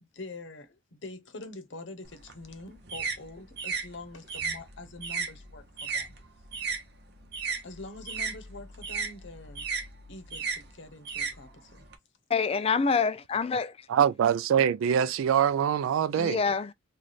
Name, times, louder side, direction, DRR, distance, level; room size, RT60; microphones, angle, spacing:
voice 1, 0.0-6.1 7.6-9.7 10.1-11.9, left 2 dB, 65° left, 0.8 m, -45 dB
sound 1, 2.1-6.8 7.1-12.0, right 5 dB, 55° right, 0.9 m, -35 dB
voice 2, 12.3-13.7 16.2-16.7, left 5 dB, 30° left, 0.3 m, -26 dB
voice 3, 13.9-16.4, right 8 dB, 85° right, 0.3 m, -24 dB
3.2 x 2.3 x 3.9 m
head